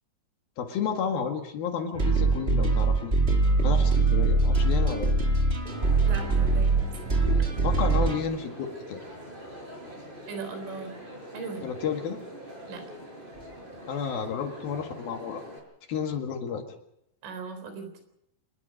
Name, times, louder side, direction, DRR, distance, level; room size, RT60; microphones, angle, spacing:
voice 1, 0.6-3.1 3.6-5.1 7.6-9.1 11.6-12.2 13.9-15.4 15.9-16.6, left 6 dB, 60° left, 4 dB, 3.2 m, -31 dB
sound 1, 1.9-8.2, right 3 dB, 70° right, 0.5 m, -23 dB
Crowd, 5.6-15.6, equal, 10° right, 5.4 m, -44 dB
voice 2, 6.0-6.7 7.1-7.6 10.3-10.9 11.3-11.7 12.7-12.8 17.2-17.9, right 4 dB, 90° right, 8 dB, 6.4 m, -38 dB
26.5 x 21.0 x 5.2 m, 0.76 s
omnidirectional pair, 5.5 m